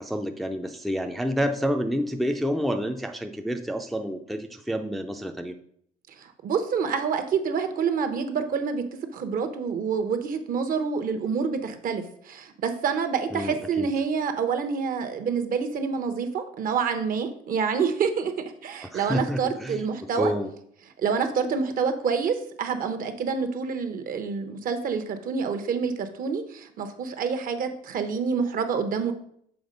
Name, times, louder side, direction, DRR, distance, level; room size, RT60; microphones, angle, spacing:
voice 1, 0.0-5.5 13.3-13.9 18.9-20.5, equal, ahead, 5 dB, 0.4 m, -29 dB
voice 2, 6.2-8.8 9.1-18.3 18.6-20.3 21.0-29.1, right 6 dB, 55° right, 8 dB, 0.9 m, -27 dB
7.1 x 3.7 x 5.2 m, 0.67 s
cardioid pair, 110°, 17 cm